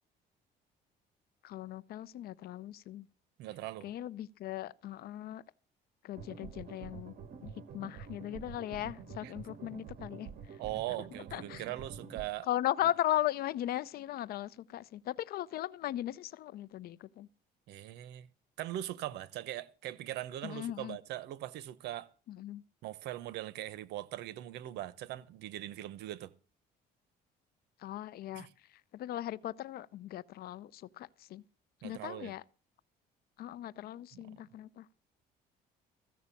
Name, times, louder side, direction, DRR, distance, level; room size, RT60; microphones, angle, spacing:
voice 1, 1.4-3.1 3.8-5.4 6.0-7.1 7.7-10.3 11.3-11.6 12.5-17.3 20.4-21.0 22.3-22.6 27.8-28.5 28.9-31.4 31.8-32.4 33.4-34.8, left 13 dB, 65° left, 0.6 m, -37 dB
voice 2, 3.4-3.9 9.2-9.3 10.6-12.5 17.7-18.3 18.6-22.1 22.8-26.3 28.3-28.5 31.8-32.3 34.1-34.2, right 14 dB, 85° right, 0.9 m, -40 dB
sound 1, 6.1-12.3, right 6 dB, 60° right, 1.6 m, -47 dB
15.0 x 6.3 x 8.3 m
cardioid pair, 110°, 17 cm